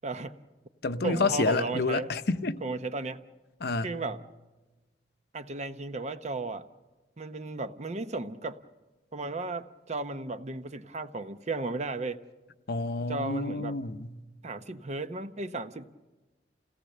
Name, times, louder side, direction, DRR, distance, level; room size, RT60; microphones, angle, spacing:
voice 1, 0.0-0.4 1.0-2.1 2.6-3.2 3.8-4.2 5.3-6.7 7.2-8.6 9.1-12.2 13.1-13.8 14.4-15.9, right 3 dB, 40° right, 0.8 m, -34 dB
voice 2, 0.8-2.6 3.6-3.9 12.7-14.1, left 3 dB, 60° left, 0.8 m, -29 dB
28.0 x 17.5 x 6.7 m
head